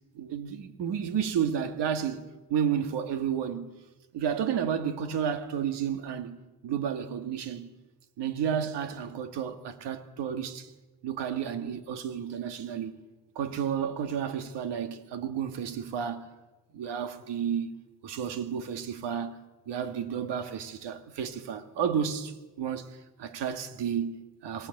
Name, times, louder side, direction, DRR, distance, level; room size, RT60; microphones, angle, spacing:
voice 1, 0.1-3.7 4.1-6.4 6.6-7.7 8.2-10.7 11.0-13.0 13.4-16.3 16.7-17.7 18.0-19.4 19.7-22.9 23.2-24.7, right 8 dB, 90° right, 2.1 m, -31 dB
23.0 x 19.5 x 8.0 m
cardioid pair, 130°, 41 cm